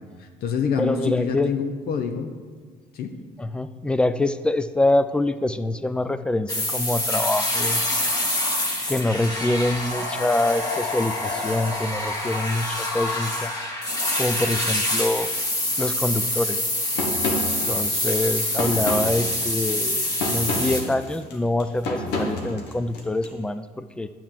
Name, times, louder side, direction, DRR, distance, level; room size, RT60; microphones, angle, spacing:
voice 1, 0.0-2.4 2.9-3.2, left 6 dB, 65° left, 6 dB, 0.8 m, -27 dB
voice 2, 0.8-1.5 3.4-7.8 8.9-13.5 14.2-15.3 15.8-16.7 17.6-24.1, left 2 dB, 5° left, 12 dB, 0.4 m, -25 dB
sound 1, 6.5-20.8, left 1 dB, 20° left, 1.7 m, -26 dB
sound 2, 17.0-23.3, left 2 dB, 85° left, 1.5 m, -30 dB
10.0 x 4.6 x 7.4 m, 1.5 s
cardioid pair, 110°, 17 cm